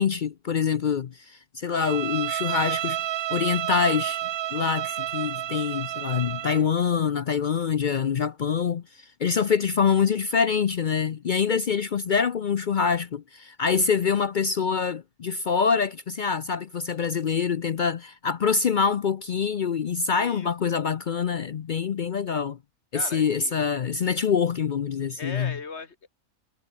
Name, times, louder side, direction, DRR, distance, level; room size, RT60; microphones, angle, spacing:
voice 1, 0.0-3.0 3.3-4.2 4.5-22.6 22.9-25.5, left 6 dB, 70° left, 0.4 m, -25 dB
Bowed string instrument, 1.8-6.7, right 14 dB, 70° right, 1.1 m, -30 dB
voice 2, 20.1-20.8 22.9-23.6 25.2-26.1, left 4 dB, 45° left, 2.0 m, -39 dB
omnidirectional pair, 1.6 m